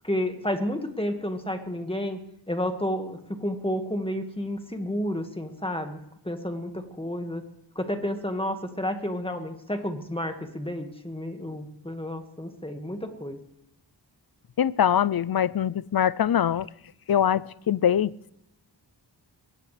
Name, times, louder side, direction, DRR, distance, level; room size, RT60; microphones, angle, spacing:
voice 1, 0.0-2.2 2.5-6.0 6.3-7.4 7.8-13.4, left 1 dB, 10° left, 5 dB, 1.8 m, -31 dB
voice 2, 14.6-16.7 17.1-18.1, left 9 dB, 55° left, 20 dB, 0.5 m, -23 dB
21.5 x 18.0 x 3.3 m, 0.79 s
wide cardioid pair, 75°, 45 cm